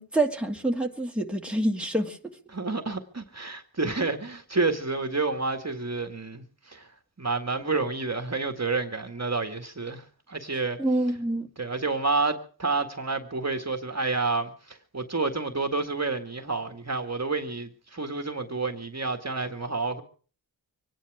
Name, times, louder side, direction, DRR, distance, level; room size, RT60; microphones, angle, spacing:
voice 1, 0.0-2.2 10.8-11.5, right 1 dB, 5° right, 2.3 m, -26 dB
voice 2, 2.5-6.9 7.2-10.8 11.6-20.0, right 3 dB, 40° right, 1.9 m, -29 dB
25.5 x 10.5 x 4.9 m
wide cardioid pair, 65°, 42 cm